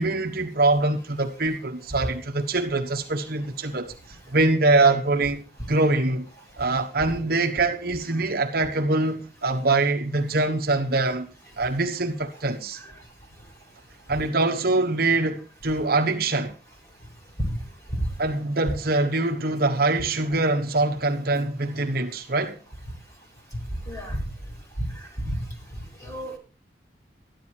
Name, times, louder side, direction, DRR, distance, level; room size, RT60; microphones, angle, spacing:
voice 1, 0.0-3.9 4.3-5.4 5.7-6.3 6.6-12.8 14.1-16.5 18.2-22.6, right 2 dB, 55° right, 1.3 m, -24 dB
voice 2, 23.8-24.2 24.8-25.4 25.7-26.4, equal, 20° left, 4.6 m, -30 dB
13.5 x 10.5 x 4.6 m
head